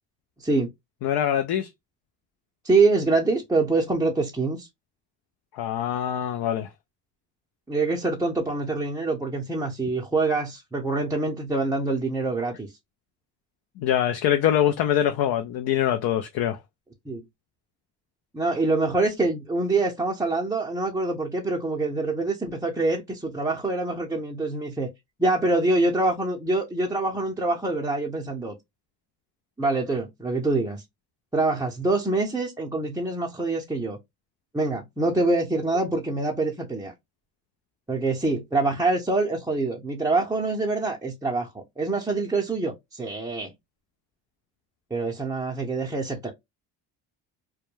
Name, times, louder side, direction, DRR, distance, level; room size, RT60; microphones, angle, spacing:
voice 1, 0.4-0.7 2.6-4.7 7.7-12.7 17.1-17.2 18.3-24.9 25.2-28.5 29.6-30.8 31.3-34.0 34.5-36.9 37.9-43.5 44.9-46.3, right 3 dB, 5° right, 0.5 m, -25 dB
voice 2, 1.0-1.7 5.5-6.7 13.8-16.6, left 10 dB, 55° left, 0.5 m, -24 dB
2.2 x 2.1 x 3.0 m
supercardioid pair, 70°, 44 cm